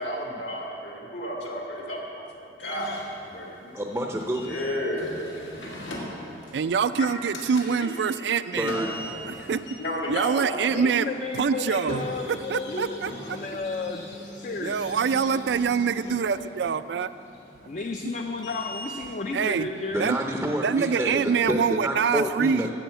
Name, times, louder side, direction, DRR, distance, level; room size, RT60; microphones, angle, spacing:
voice 1, 0.0-2.1 2.3-3.0 3.3-3.9 4.4-5.3 6.6-6.7 7.0-7.1 7.8-7.9 9.8-10.7, left 1 dB, 70° left, -2 dB, 2.0 m, -32 dB
sound 1, 2.6-21.0, equal, 85° left, 1.9 m, -41 dB
voice 2, 3.7-4.6 8.5-9.2 19.9-22.7, equal, 10° right, 1 dB, 0.5 m, -28 dB
voice 3, 6.5-8.7 9.4-9.6 10.1-11.1 11.3-12.0 12.3-13.4 14.6-17.1 19.3-19.7 20.0-20.2 20.6-22.6, right 6 dB, 65° right, 14 dB, 0.3 m, -25 dB
voice 4, 10.7-13.0 13.3-14.8 17.7-20.0, left 3 dB, 45° left, 3 dB, 0.4 m, -33 dB
9.0 x 7.1 x 7.8 m, 2.8 s
head